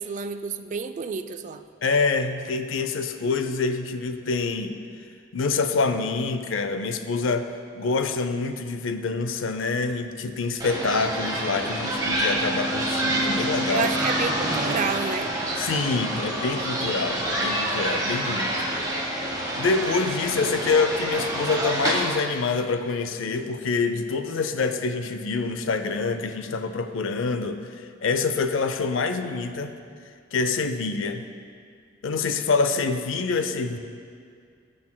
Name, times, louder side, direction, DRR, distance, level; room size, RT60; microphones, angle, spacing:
voice 1, 0.0-1.6 13.7-15.3, right 5 dB, 40° right, 9 dB, 0.3 m, -29 dB
voice 2, 1.8-4.8 5.3-13.9 15.6-18.5 19.6-29.7 30.3-31.2 32.0-33.8, left 4 dB, 75° left, 9 dB, 0.5 m, -26 dB
sound 1, 10.6-22.0, right 1 dB, 20° right, 1.4 m, -27 dB
18.0 x 6.3 x 2.2 m, 2.2 s
head